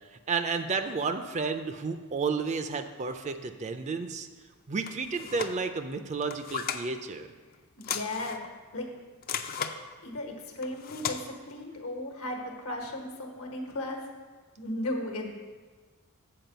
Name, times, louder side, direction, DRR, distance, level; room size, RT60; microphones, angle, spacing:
voice 1, 0.3-4.3 4.7-7.3, right 4 dB, 30° right, 8 dB, 0.4 m, -31 dB
sound 1, 4.8-5.6 6.2-6.8 7.8-8.5 9.2-9.8 10.6-11.2, left 7 dB, 40° left, 0.4 m, -35 dB
voice 2, 7.8-8.4 8.7-8.9 10.0-14.0 14.6-15.3, left 1 dB, 75° left, 2 dB, 1.3 m, -35 dB
7.6 x 4.6 x 6.8 m, 1.4 s
head